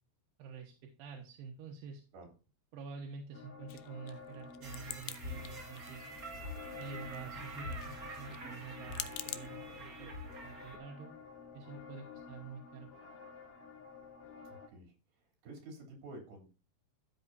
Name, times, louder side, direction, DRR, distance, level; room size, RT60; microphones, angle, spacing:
voice 1, 0.4-2.0 2.7-6.1 6.7-10.1 10.4-11.1 11.5-12.9, right 5 dB, 85° right, 1 dB, 3.4 m, -48 dB
sound 1, 3.3-14.7, left 5 dB, 55° left, 3.7 m, -51 dB
sound 2, 3.7-5.2 5.5-6.2 6.4-9.5, left 14 dB, 85° left, 2.0 m, -44 dB
sound 3, 4.6-10.8, equal, 45° right, 1.1 m, -46 dB
voice 2, 14.4-14.9 15.4-16.5, right 2 dB, 65° right, 2 dB, 5.0 m, -50 dB
13.0 x 8.0 x 2.7 m, 0.32 s
omnidirectional pair, 4.7 m